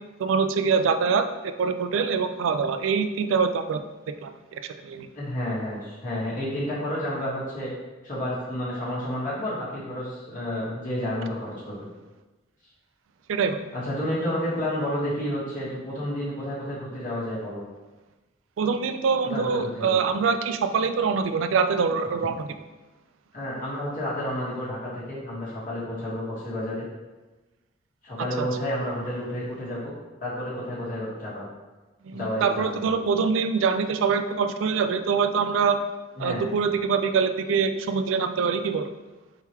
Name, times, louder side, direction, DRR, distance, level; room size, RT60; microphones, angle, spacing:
voice 1, 0.2-3.8 4.1-5.1 13.3-13.6 18.6-22.5 28.4-28.5 32.0-35.8 36.2-38.9, right 5 dB, 70° right, 9 dB, 0.3 m, -24 dB
voice 2, 5.1-7.7 8.0-11.9 13.7-17.6 19.2-20.0 23.3-26.8 28.0-29.9 30.2-31.5 32.1-33.0 36.2-36.5, left 1 dB, 40° left, -8 dB, 1.3 m, -30 dB
4.6 x 3.7 x 2.9 m, 1.2 s
head